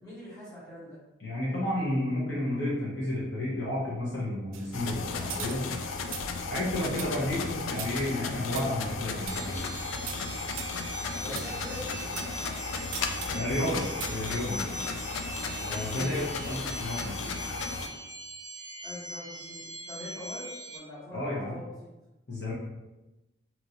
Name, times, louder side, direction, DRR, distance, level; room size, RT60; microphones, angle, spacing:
voice 1, 0.0-1.0 11.1-13.9 15.9-16.2 18.8-21.7, left 1 dB, 20° left, -10 dB, 1.1 m, -44 dB
voice 2, 1.2-5.7 6.5-9.7 11.2-11.3 13.3-13.8 14.1-14.8 15.6-17.3 21.1-21.6 22.3-22.5, left 1 dB, 60° left, -7 dB, 0.8 m, -31 dB
sound 1, 4.5-12.4 12.9-14.4, right 6 dB, 85° right, 0.3 m, -43 dB
sound 2, 4.7-17.9, left 4 dB, 85° left, 0.3 m, -35 dB
sound 3, 9.3-20.8, right 2 dB, 15° right, 0.6 m, -41 dB
2.9 x 2.6 x 2.8 m, 1.0 s
head